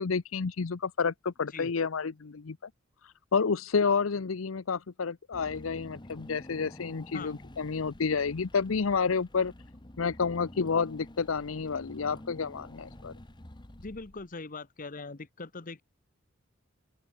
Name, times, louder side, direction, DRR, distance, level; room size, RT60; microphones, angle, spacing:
voice 1, 0.0-2.7 3.0-9.5 10.0-13.1, left 5 dB, 80° left, 0.7 m, -30 dB
Car / Engine, 5.3-14.5, left 1 dB, 20° left, 1.4 m, -49 dB
voice 2, 13.8-15.8, left 3 dB, 40° left, 1.1 m, -41 dB
open air
head